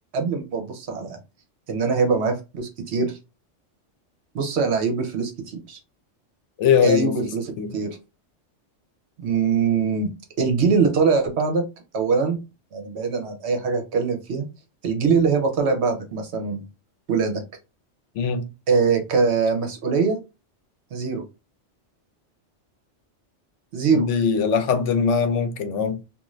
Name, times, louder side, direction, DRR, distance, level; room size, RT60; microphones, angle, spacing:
voice 1, 0.1-1.2 1.7-3.2 4.3-5.8 6.8-8.0 9.2-10.1 10.4-11.6 11.9-12.4 12.7-14.5 14.8-16.6 17.1-17.4 18.7-20.2 20.9-21.2 23.7-24.1, right 5 dB, 65° right, 0.9 m, -22 dB
voice 2, 6.6-7.7 18.2-18.5 23.9-26.0, left 6 dB, 75° left, 0.9 m, -22 dB
2.5 x 2.4 x 3.0 m
omnidirectional pair, 1.3 m